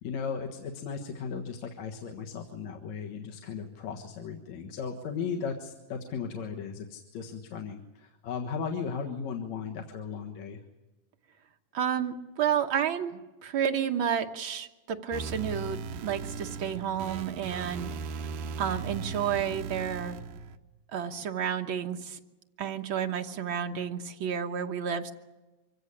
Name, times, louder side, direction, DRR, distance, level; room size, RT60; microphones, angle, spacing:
voice 1, 0.0-10.6, left 6 dB, 60° left, 2 dB, 2.5 m, -36 dB
voice 2, 11.7-17.9 18.6-20.2 20.9-22.2 22.6-25.1, right 8 dB, 60° right, 4 dB, 1.3 m, -31 dB
sound 1, 15.1-20.6, right 5 dB, 75° right, 2.6 m, -38 dB
24.5 x 16.5 x 9.9 m, 1.1 s
omnidirectional pair, 3.9 m